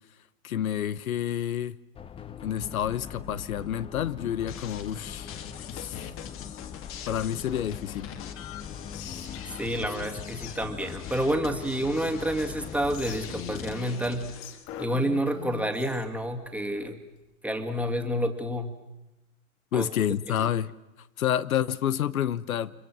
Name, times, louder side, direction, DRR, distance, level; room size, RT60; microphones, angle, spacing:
voice 1, 0.4-1.8 2.4-5.3 5.7-6.1 7.1-8.1 19.7-20.7 21.2-22.7, left 10 dB, 90° left, 1.0 m, -29 dB
sound 1, 1.9-13.6, left 8 dB, 15° left, 0.8 m, -42 dB
sound 2, 4.5-14.8, left 8 dB, 30° left, 1.7 m, -43 dB
Whispering, 8.9-10.1 10.4-10.6 10.8-12.3 12.9-16.1, left 7 dB, 45° left, 5.0 m, -44 dB
voice 2, 9.6-14.3 14.8-17.0 17.4-18.7 19.7-19.9 20.3-20.5, equal, 5° right, 2.2 m, -29 dB
30.0 x 25.0 x 6.3 m
hypercardioid pair, 130°, 41 cm